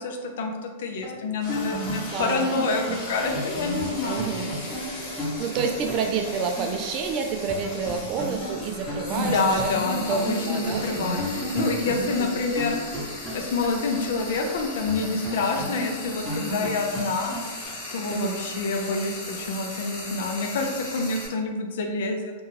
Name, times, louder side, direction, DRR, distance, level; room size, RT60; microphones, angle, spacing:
voice 1, 0.0-4.3 9.2-12.8 13.3-17.3 17.9-22.3, left 3 dB, 70° left, 3 dB, 0.4 m, -27 dB
sound 1, 1.0-6.8 7.0-7.1 7.5-10.4 10.7-14.5 14.9-17.7, equal, ahead, 0.9 m, -34 dB
Frying (food), 1.4-21.3, left 2 dB, 40° left, 0.9 m, -38 dB
voice 2, 2.1-3.0 4.0-4.5 5.1-10.2 10.5-10.9 12.1-12.3 18.1-18.4, right 5 dB, 40° right, 4 dB, 0.3 m, -29 dB
sound 2, 3.2-15.0, equal, 15° left, 1.1 m, -38 dB
2.3 x 2.2 x 3.1 m, 1.4 s
hypercardioid pair, 125°, 0 cm